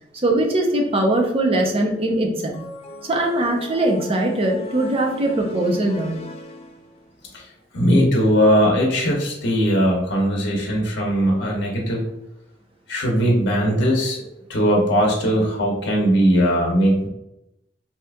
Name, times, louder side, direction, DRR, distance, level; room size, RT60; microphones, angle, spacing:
voice 1, 0.2-2.6 3.0-6.2, right 1 dB, 30° right, 1 dB, 0.6 m, -21 dB
sound 1, 2.5-7.2, left 2 dB, 35° left, 0.3 m, -38 dB
voice 2, 7.7-12.1 12.9-17.1, equal, 65° left, -1 dB, 0.8 m, -19 dB
2.8 x 2.4 x 3.4 m, 0.85 s
head